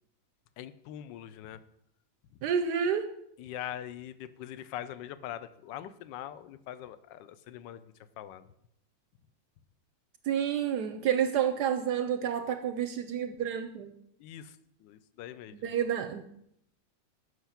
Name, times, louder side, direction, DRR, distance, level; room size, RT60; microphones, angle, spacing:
voice 1, 0.6-1.6 3.4-7.8 8.2-8.5 14.2-14.6 14.8-15.7, left 11 dB, 75° left, 14 dB, 1.2 m, -42 dB
voice 2, 2.4-3.1 10.2-13.9 15.6-16.2, right 8 dB, 70° right, 8 dB, 1.0 m, -29 dB
8.0 x 6.4 x 5.7 m, 0.76 s
omnidirectional pair, 2.1 m